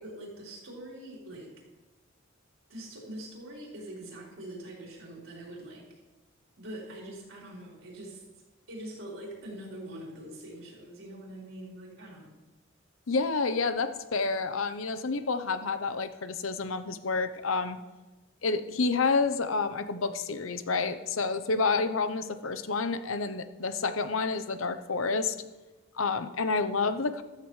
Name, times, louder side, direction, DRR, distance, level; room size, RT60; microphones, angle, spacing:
voice 1, 0.0-1.5 2.7-5.8 6.6-8.2 8.7-12.3, right 1 dB, 80° right, -4 dB, 4.6 m, -43 dB
voice 2, 13.1-17.8 18.4-25.3 26.0-27.2, left 4 dB, 90° left, 10 dB, 0.8 m, -29 dB
14.5 x 14.0 x 3.3 m, 1.1 s
head